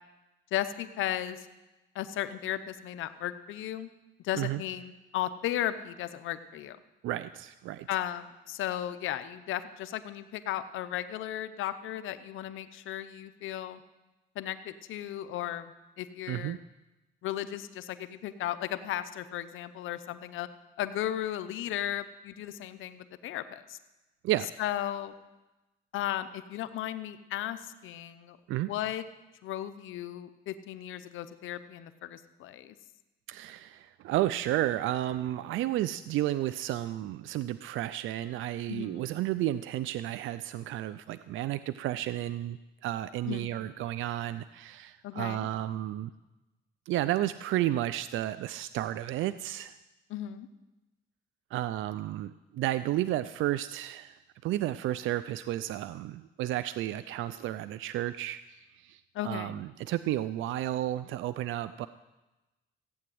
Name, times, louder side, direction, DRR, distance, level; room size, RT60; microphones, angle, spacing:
voice 1, 0.5-1.5 1.9-3.9 4.2-6.8 7.9-13.8 14.4-15.7 16.0-16.6 17.2-20.5 20.8-23.8 24.6-25.1 25.9-28.4 28.7-29.0 29.4-32.7 38.7-39.1 43.3-43.6 45.0-45.5 50.1-50.5 59.1-59.6, left 12 dB, 85° left, 12 dB, 0.8 m, -35 dB
voice 2, 7.0-7.9 16.3-16.6 24.2-24.5 28.5-28.7 33.3-46.1 46.9-49.7 51.5-61.9, right 14 dB, 80° right, 14 dB, 0.4 m, -32 dB
15.5 x 8.7 x 7.7 m, 1.1 s
cardioid pair, 90°, 20 cm